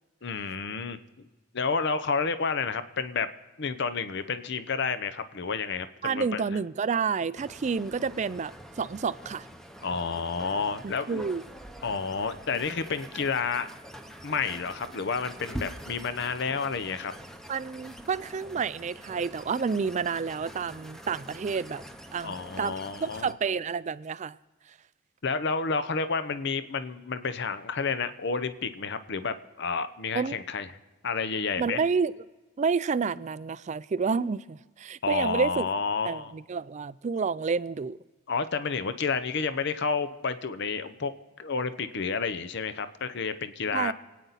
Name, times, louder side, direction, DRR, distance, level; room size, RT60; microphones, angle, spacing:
voice 1, 0.2-1.0 1.5-3.3 3.6-6.5 9.8-11.2 11.8-13.7 14.2-17.1 22.2-23.3 25.2-30.7 31.0-31.8 35.0-36.3 38.3-41.1 41.4-43.9, left 5 dB, 55° left, 0.7 m, -30 dB
voice 2, 6.0-9.5 10.8-11.4 17.5-21.8 22.1-22.7 23.0-24.4 30.1-30.4 31.6-32.2 32.6-35.7 36.1-38.0 43.7-43.9, right 5 dB, 35° right, 0.3 m, -29 dB
sound 1, 7.4-23.3, equal, ahead, 0.8 m, -45 dB
27.5 x 9.4 x 4.1 m
head